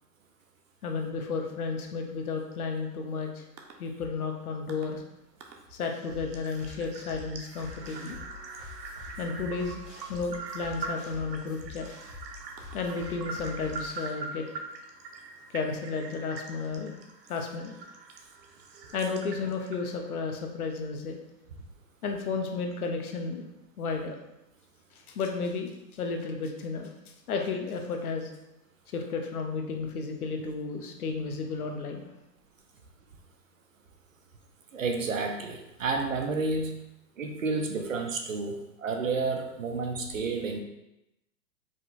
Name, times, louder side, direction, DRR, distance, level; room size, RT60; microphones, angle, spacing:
voice 1, 0.8-3.4 3.8-5.0 5.7-8.2 9.2-9.8 10.1-11.9 12.7-14.5 15.5-17.0 17.3-17.7 18.9-21.2 22.0-23.4 23.8-24.2 24.9-26.9 27.3-28.3 28.9-32.1, left 4 dB, 60° left, 3 dB, 0.8 m, -33 dB
sound 1, 3.6-3.7 4.7-4.9 5.4-5.5 5.9-20.1, right 4 dB, 80° right, 0.9 m, -43 dB
sound 2, 6.1-14.1, left 4 dB, 20° left, 0.5 m, -46 dB
voice 2, 34.7-36.8 37.2-40.6, right 4 dB, 55° right, 4 dB, 0.5 m, -30 dB
5.0 x 2.2 x 3.9 m, 0.89 s
hypercardioid pair, 180°, 50 cm